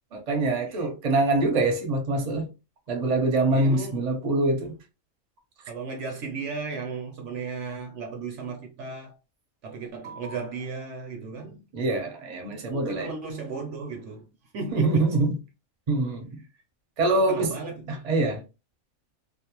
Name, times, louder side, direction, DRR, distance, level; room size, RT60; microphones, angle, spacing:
voice 1, 0.1-2.5 2.9-4.7 11.7-13.2 14.7-15.3 15.9-16.4 17.0-17.5 17.9-18.4, right 2 dB, 40° right, 0.6 m, -24 dB
voice 2, 3.5-4.1 5.7-9.2 9.6-11.6 12.5-14.3 14.5-15.2 17.1-18.0, right 4 dB, 65° right, 0.8 m, -35 dB
2.6 x 2.1 x 2.8 m
omnidirectional pair, 1.5 m